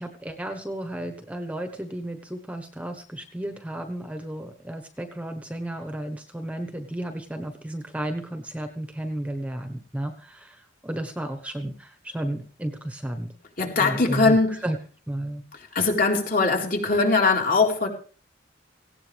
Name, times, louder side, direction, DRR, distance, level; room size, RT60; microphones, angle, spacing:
voice 1, 0.0-13.3 13.8-14.4 14.6-14.8 15.1-15.4, right 1 dB, 5° right, 5 dB, 1.2 m, -33 dB
voice 2, 13.6-14.6 15.5-17.9, left 3 dB, 45° left, 1 dB, 4.4 m, -21 dB
18.0 x 17.0 x 3.5 m, 0.41 s
head